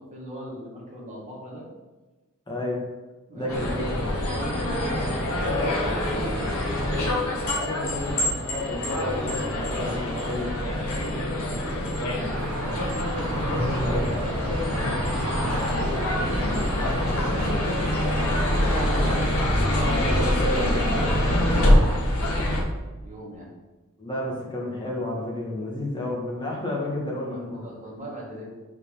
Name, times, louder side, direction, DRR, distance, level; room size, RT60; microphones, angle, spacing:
voice 1, 0.0-1.7 3.3-7.2 9.9-12.8 13.6-15.8 16.3-19.1 20.4-23.5 27.3-28.5, equal, 35° right, -4 dB, 2.2 m, -39 dB
voice 2, 2.5-2.8 3.3-4.0 7.6-10.5 12.3-12.5 13.8-14.1 18.9-21.1 24.0-27.6, left 1 dB, 20° left, -3 dB, 1.8 m, -31 dB
sound 1, 3.5-22.6, left 1 dB, 70° left, 1.7 m, -25 dB
sound 2, 12.3-22.0, right 1 dB, 85° right, 1.5 m, -35 dB
5.6 x 4.7 x 5.6 m, 1.2 s
head